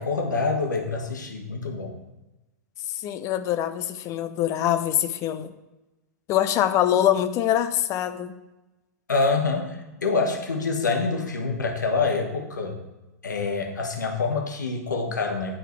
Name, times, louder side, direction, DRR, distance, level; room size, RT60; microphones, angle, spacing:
voice 1, 0.0-2.0 9.1-12.8 13.2-15.6, left 4 dB, 85° left, 2 dB, 1.2 m, -26 dB
voice 2, 3.0-5.5 6.3-8.3, left 11 dB, 35° left, 10 dB, 0.5 m, -24 dB
9.8 x 3.9 x 4.5 m, 1.0 s
figure-of-eight pair, 105°, 10 cm